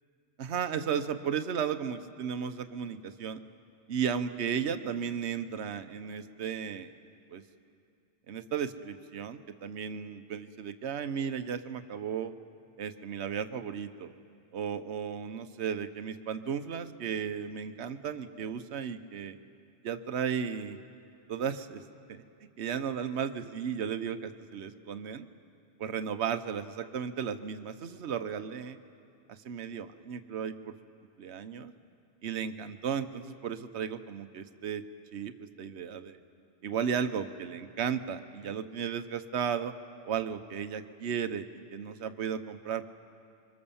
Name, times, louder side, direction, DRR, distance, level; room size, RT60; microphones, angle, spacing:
voice 1, 0.4-3.4 3.9-6.9 7.3-7.4 8.3-12.3 12.8-14.1 14.5-19.4 19.8-20.8 21.3-21.8 22.1-25.3 25.8-28.8 29.3-30.7 31.2-31.7 32.2-34.8 35.1-36.2 36.6-39.7 40.1-42.9, right 7 dB, 65° right, 9 dB, 1.2 m, -34 dB
28.0 x 24.0 x 7.1 m, 2.5 s
omnidirectional pair, 1.2 m